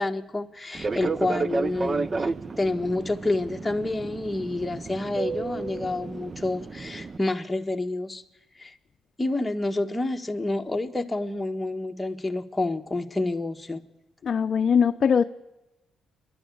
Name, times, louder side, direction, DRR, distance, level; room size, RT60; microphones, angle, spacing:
voice 1, 0.0-2.3 2.6-8.2 8.6-8.8 9.2-13.8, left 2 dB, 10° left, 3 dB, 1.4 m, -28 dB
Fixed-wing aircraft airplane, 0.7-7.2, right 4 dB, 30° right, 0.6 m, -32 dB
voice 2, 14.2-15.2, left 7 dB, 50° left, 6 dB, 0.6 m, -21 dB
29.0 x 11.0 x 8.6 m, 1.0 s
cardioid pair, 90°, 0 cm